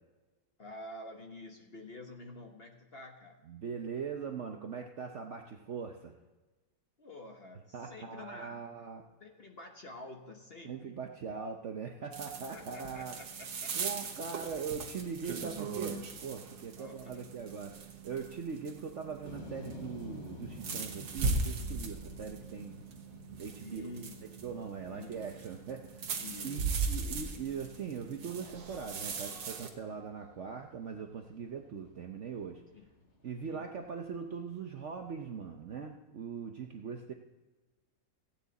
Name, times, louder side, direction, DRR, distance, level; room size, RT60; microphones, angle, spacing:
voice 1, 0.6-3.4 7.0-8.6 9.2-10.9 12.5-13.7 16.8-17.3 23.6-24.3 24.9-25.3 26.1-26.8 27.0-27.4 32.7-32.9 33.5-33.6, left 2 dB, 40° left, 3 dB, 1.1 m, -48 dB
voice 2, 3.5-6.1 7.7-9.1 10.6-13.2 13.7-22.8 23.4-23.9 24.4-32.6 33.2-37.1, right 6 dB, 55° right, 3 dB, 0.8 m, -41 dB
sound 1, 12.1-29.7, right 4 dB, 90° right, 1.9 m, -39 dB
sound 2, 19.2-35.2, left 1 dB, 80° left, 2.6 m, -52 dB
15.5 x 9.3 x 4.0 m, 1.2 s
omnidirectional pair, 1.9 m